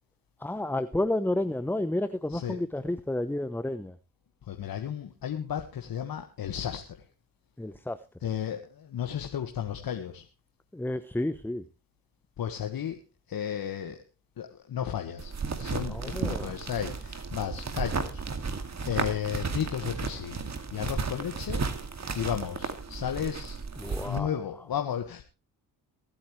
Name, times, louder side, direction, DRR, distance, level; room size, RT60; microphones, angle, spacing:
voice 1, 0.4-3.9 7.6-8.0 10.7-11.6 15.9-16.5 23.8-24.3, left 1 dB, 5° left, 13 dB, 0.8 m, -31 dB
voice 2, 4.5-7.0 8.2-10.2 12.4-13.0 13.3-14.0 14.4-15.3 15.6-18.6 18.8-21.6 22.1-23.6 24.0-25.2, left 9 dB, 60° left, 5 dB, 1.7 m, -34 dB
sound 1, 15.2-24.2, right 4 dB, 40° right, 2.3 m, -34 dB
23.5 x 8.8 x 3.2 m, 0.32 s
supercardioid pair, 55°, 41 cm